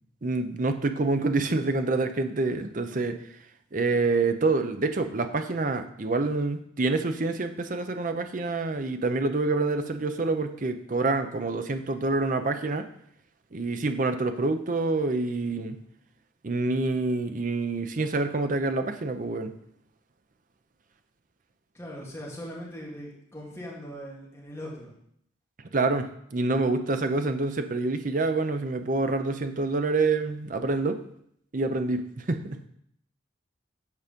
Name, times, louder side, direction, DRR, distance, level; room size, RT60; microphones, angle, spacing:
voice 1, 0.2-3.2 3.7-12.8 13.5-15.8 16.4-19.5 25.7-31.0 31.5-32.6, right 3 dB, 45° right, 8 dB, 0.6 m, -27 dB
voice 2, 21.7-24.9, equal, 15° left, -4 dB, 2.0 m, -40 dB
8.3 x 4.9 x 5.2 m, 0.70 s
head